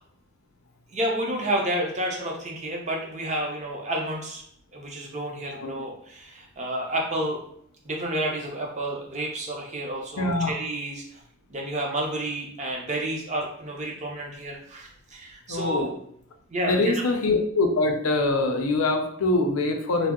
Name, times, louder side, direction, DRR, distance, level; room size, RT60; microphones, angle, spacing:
voice 1, 0.9-4.4 4.7-7.4 7.8-11.2 11.5-15.9 16.5-16.9, right 1 dB, 35° right, 0 dB, 0.6 m, -30 dB
voice 2, 10.2-10.6 15.5-15.9 16.7-20.1, left 2 dB, 85° left, 4 dB, 0.5 m, -24 dB
2.7 x 2.0 x 3.6 m, 0.67 s
head